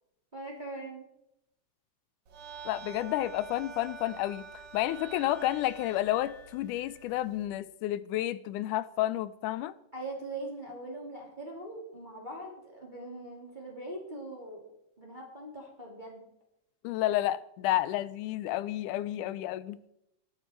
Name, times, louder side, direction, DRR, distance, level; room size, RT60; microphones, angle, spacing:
voice 1, 0.3-1.1 9.9-14.6 15.0-16.2, right 2 dB, 15° right, 3.0 m, -41 dB
sound 1, 2.3-7.5, right 5 dB, 55° right, 2.5 m, -47 dB
voice 2, 2.7-4.5 4.7-9.7 16.8-19.8, left 14 dB, 85° left, 2.2 m, -31 dB
22.0 x 8.8 x 4.5 m
omnidirectional pair, 3.5 m